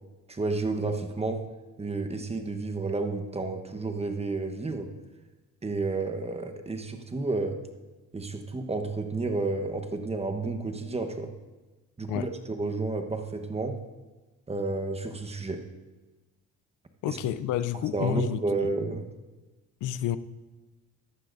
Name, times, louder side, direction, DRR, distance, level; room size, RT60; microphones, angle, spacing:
voice 1, 0.3-1.4 1.8-4.9 5.6-7.6 8.1-11.3 12.0-13.8 14.5-15.6 17.1-17.2 17.7-19.1, right 3 dB, 20° right, 1.1 m, -31 dB
voice 2, 17.0-18.7 19.8-20.2, left 10 dB, 85° left, 0.5 m, -29 dB
14.5 x 11.5 x 2.6 m
cardioid pair, 90°, 30 cm